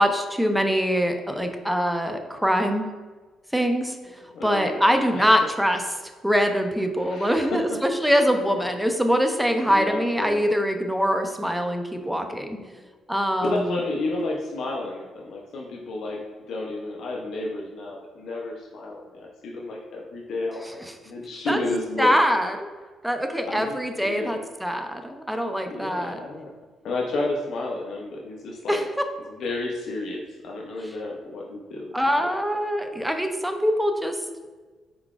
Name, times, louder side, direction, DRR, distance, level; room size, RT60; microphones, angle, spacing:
voice 1, 0.0-2.9 3.5-5.8 6.2-12.6 13.1-13.8 21.5-21.6 22.0-22.6 23.0-26.2 28.7-28.9 31.9-34.2, equal, 5° right, 5 dB, 0.5 m, -23 dB
voice 2, 4.3-4.8 5.1-5.4 7.0-7.6 9.7-10.5 12.6-12.9 13.4-16.2 16.5-22.1 23.4-24.4 25.6-26.5 26.8-28.8 29.3-32.0, left 2 dB, 70° left, -1 dB, 0.5 m, -31 dB
4.6 x 3.8 x 2.4 m, 1.4 s
cardioid pair, 90°, 0 cm